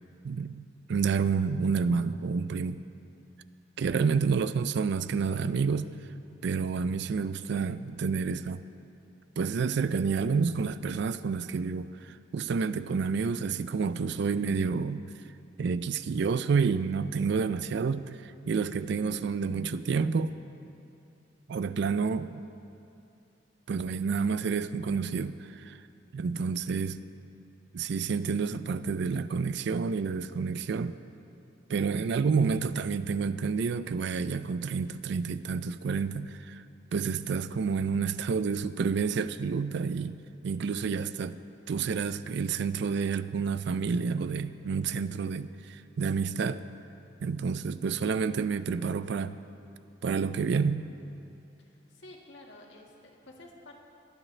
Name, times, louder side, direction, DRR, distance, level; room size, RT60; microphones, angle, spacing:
voice 1, 0.2-2.8 3.8-5.9 6.4-8.6 9.4-15.1 15.6-20.4 21.5-22.4 23.7-25.8 26.1-27.0 27.7-31.0 31.7-36.6 36.9-40.2 40.4-41.4 41.7-46.6 47.2-49.4 50.0-50.9, right 5 dB, 65° right, 14 dB, 0.4 m, -29 dB
voice 2, 51.6-53.8, left 1 dB, 65° left, -1 dB, 1.8 m, -51 dB
20.5 x 9.9 x 3.3 m, 2.8 s
head